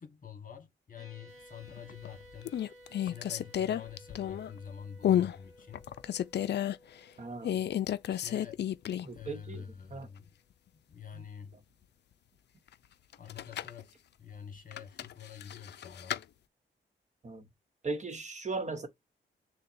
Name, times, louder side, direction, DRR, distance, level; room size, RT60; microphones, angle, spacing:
voice 1, 0.0-2.6 3.0-5.9 8.1-8.6 9.1-10.3 10.9-11.5 13.2-13.9 14.2-16.2, left 7 dB, 40° left, 1.3 m, -47 dB
sound 1, 1.0-9.6, equal, 15° right, 1.9 m, -57 dB
sound 2, 1.7-2.1 2.4-4.6 5.0-5.4 5.7-6.8 7.4-9.2 9.5-9.6 13.1-13.8 14.7-16.2, left 10 dB, 55° left, 0.4 m, -31 dB
voice 2, 7.2-7.6 9.0-10.1 11.1-11.2 17.2-17.4 17.8-18.9, right 3 dB, 35° right, 1.0 m, -38 dB
6.6 x 2.2 x 2.6 m
cardioid pair, 70°, 21 cm